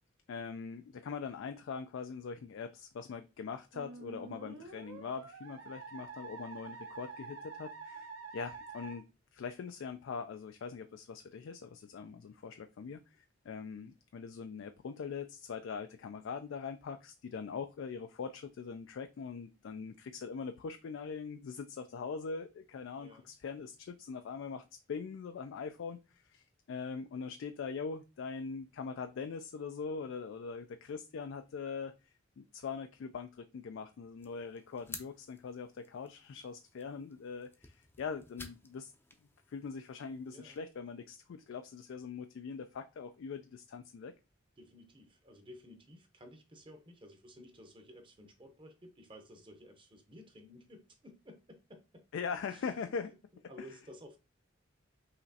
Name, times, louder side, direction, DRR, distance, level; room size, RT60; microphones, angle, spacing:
voice 1, 0.3-9.1 9.3-38.9 39.5-44.1 52.1-53.1, left 5 dB, 65° left, 0.3 m, -42 dB
Musical instrument, 3.7-9.0, right 4 dB, 70° right, 1.0 m, -48 dB
voice 2, 23.0-23.3 40.3-40.6 44.6-52.1 52.5-52.6 53.5-54.2, left 1 dB, 25° right, 0.8 m, -54 dB
sound 1, 34.2-40.6, left 3 dB, 10° left, 0.5 m, -54 dB
5.6 x 3.0 x 2.7 m
head